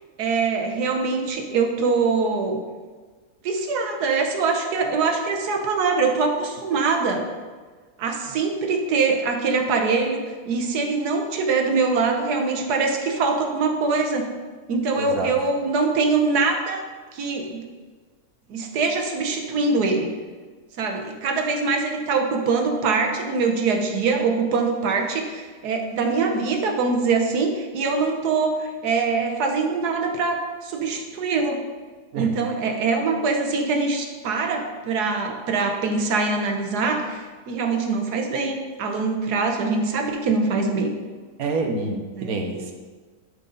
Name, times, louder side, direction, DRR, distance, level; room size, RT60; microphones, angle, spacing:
voice 1, 0.2-2.6 3.4-7.2 8.0-14.3 14.7-16.8 17.1-17.6 18.5-20.1 20.8-31.6 32.1-40.9 42.2-42.3, right 4 dB, 90° right, 3 dB, 1.4 m, -23 dB
voice 2, 15.0-15.3 32.1-32.4 41.4-42.7, right 3 dB, 70° right, 3 dB, 1.3 m, -27 dB
11.5 x 4.0 x 3.9 m, 1.4 s
omnidirectional pair, 1.6 m